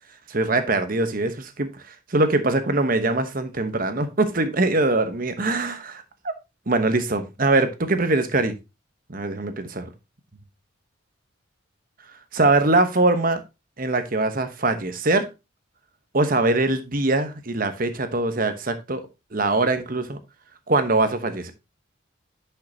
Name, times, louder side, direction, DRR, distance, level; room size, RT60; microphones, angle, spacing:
voice 1, 0.3-1.8 2.1-6.0 6.7-8.6 9.1-9.9 12.3-13.4 13.8-15.3 16.1-19.0 19.3-20.2 20.7-21.5, right 2 dB, 45° right, 1.0 m, -22 dB
10.5 x 5.6 x 2.8 m
head